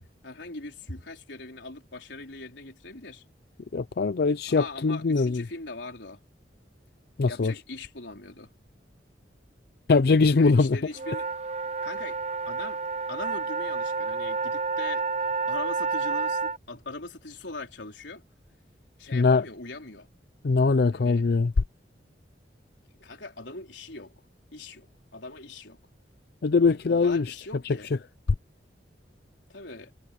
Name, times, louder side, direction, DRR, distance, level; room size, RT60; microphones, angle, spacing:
voice 1, 0.0-3.2 4.5-6.2 7.2-8.5 10.4-11.3 11.8-12.2 12.5-12.8 13.1-15.1 15.5-18.2 19.0-20.1 20.9-21.3 22.9-24.1 24.5-25.8 26.7-27.9 29.5-29.9, left 3 dB, 85° left, 3.9 m, -41 dB
voice 2, 3.7-5.4 7.2-7.5 9.9-10.8 19.1-19.4 20.4-21.5 26.4-27.2, left 4 dB, 60° left, 0.5 m, -21 dB
sound 1, 10.9-16.6, right 4 dB, 35° right, 0.4 m, -30 dB
head